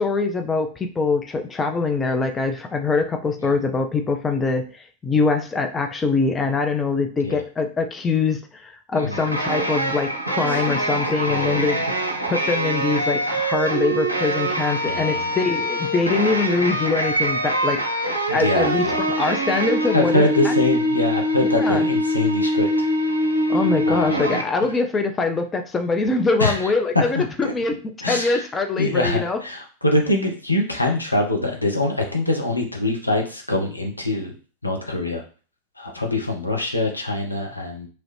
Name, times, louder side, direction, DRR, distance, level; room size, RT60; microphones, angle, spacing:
voice 1, 0.0-4.7 5.0-11.8 12.3-17.8 18.3-20.5 21.6-21.9 23.5-29.4, left 4 dB, 20° left, 6 dB, 0.4 m, -23 dB
sound 1, 9.1-24.4, equal, 85° right, 0.5 m, -23 dB
voice 2, 11.2-11.7 14.9-15.3 18.3-19.0 19.9-22.7 23.9-24.2 26.4-26.7 27.1-27.5 28.0-28.5 28.8-34.3 34.6-35.2 35.8-37.9, left 2 dB, 85° left, 1 dB, 0.6 m, -24 dB
3.0 x 2.5 x 3.0 m, 0.38 s
figure-of-eight pair, 90°, 0 cm